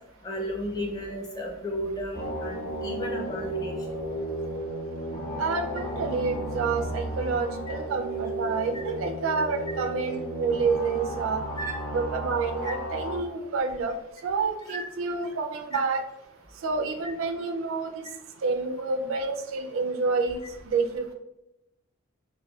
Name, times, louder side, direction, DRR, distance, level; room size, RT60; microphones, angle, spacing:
voice 1, 0.2-4.0 7.7-7.8 11.6-11.7 12.6-12.7 14.7-14.9 15.7-15.8, equal, 20° left, -1 dB, 0.5 m, -34 dB
sound 1, 2.1-13.2, right 1 dB, 35° left, 1.3 m, -34 dB
voice 2, 5.4-11.4 11.9-13.9 14.2-16.0 16.6-18.1 18.4-21.1, right 4 dB, 75° right, 5 dB, 0.4 m, -28 dB
4.0 x 2.1 x 2.3 m, 0.89 s
head